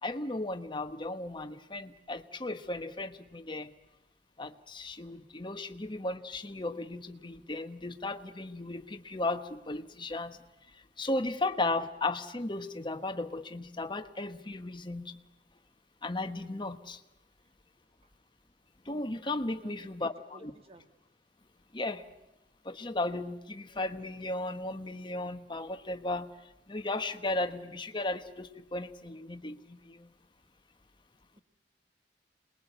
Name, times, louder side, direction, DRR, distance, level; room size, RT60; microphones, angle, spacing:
voice 1, 0.0-3.7 4.4-10.4 10.7-15.2 16.0-17.0 18.8-20.5 21.7-22.0 22.6-26.3 26.7-30.1, left 2 dB, 25° left, 8 dB, 1.3 m, -35 dB
voice 2, 19.6-20.9, right 1 dB, 35° right, 7 dB, 1.9 m, -55 dB
27.5 x 21.0 x 8.0 m, 0.96 s
head